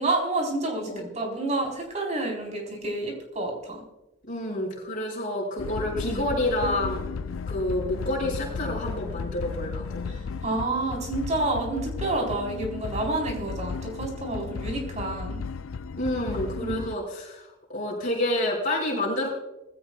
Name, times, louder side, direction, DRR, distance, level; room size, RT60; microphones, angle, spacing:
voice 1, 0.0-3.8 6.1-6.2 10.1-15.4 16.6-16.8, right 2 dB, 35° right, 1 dB, 4.1 m, -29 dB
voice 2, 4.3-7.0 7.5-10.0 15.9-19.3, left 1 dB, 45° left, -4 dB, 5.7 m, -28 dB
sound 1, 5.6-16.9, left 5 dB, 85° left, 0.4 m, -34 dB
20.0 x 16.0 x 2.4 m, 0.99 s
head